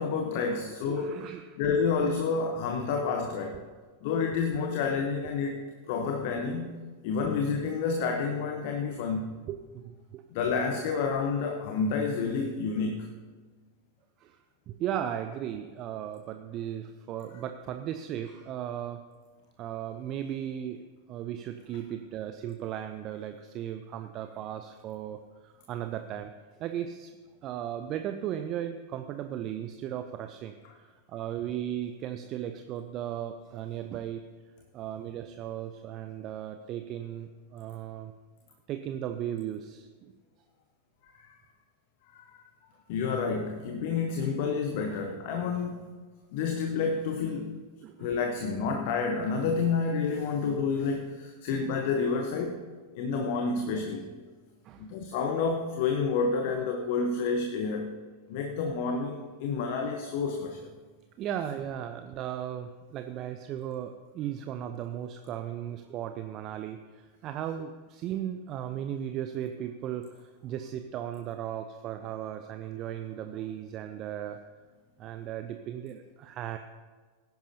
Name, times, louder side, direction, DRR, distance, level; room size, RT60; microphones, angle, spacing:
voice 1, 0.0-1.3 1.6-3.6 4.0-5.6 5.9-6.8 7.0-9.4 10.3-13.1 41.0-41.3 42.1-42.4 42.9-45.9 46.3-47.6 48.0-52.6 52.9-54.1 54.8-57.9 58.3-60.7, left 5 dB, 50° left, 4 dB, 1.0 m, -29 dB
voice 2, 0.9-1.6 3.5-3.7 7.2-7.3 9.5-10.2 14.2-19.0 19.6-20.8 21.1-26.3 26.6-27.1 27.4-34.2 34.7-38.1 38.7-40.1 47.8-48.1 53.1-53.3 54.6-54.9 61.2-74.4 75.0-76.6, right 10 dB, 35° right, 7 dB, 0.6 m, -36 dB
18.0 x 10.5 x 2.8 m, 1.4 s
figure-of-eight pair, 90°, 0 cm